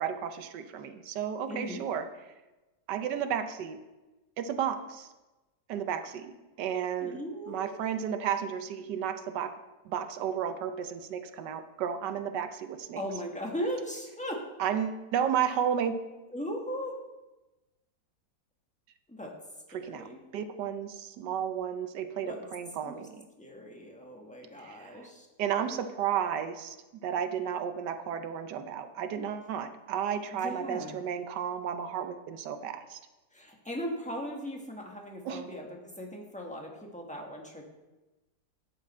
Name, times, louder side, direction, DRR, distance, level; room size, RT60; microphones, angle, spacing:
voice 1, 0.0-2.0 2.9-3.8 4.4-5.1 5.7-7.2 7.5-9.5 9.8-13.0 14.6-16.0 19.7-23.3 24.6-25.1 25.4-26.8 27.0-33.0 35.2-35.4, right 8 dB, 85° right, 8 dB, 1.3 m, -33 dB
voice 2, 1.5-1.8 7.0-7.9 12.9-14.5 16.3-17.0 19.1-19.4 19.8-20.2 22.2-22.4 22.8-23.0 23.4-25.3 30.3-30.9 33.3-37.6, equal, 5° left, 0 dB, 1.3 m, -38 dB
11.0 x 7.5 x 4.3 m, 1.1 s
omnidirectional pair, 1.8 m